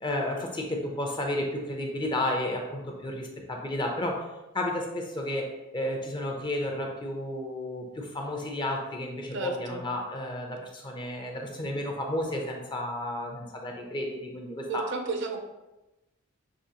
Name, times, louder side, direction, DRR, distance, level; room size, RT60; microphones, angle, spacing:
voice 1, 0.0-4.2 4.5-5.5 5.7-14.8, left 1 dB, 20° left, 1 dB, 0.6 m, -32 dB
voice 2, 9.3-9.8 14.7-15.4, right 3 dB, 60° right, 4 dB, 0.6 m, -32 dB
6.2 x 3.0 x 2.8 m, 1.0 s
head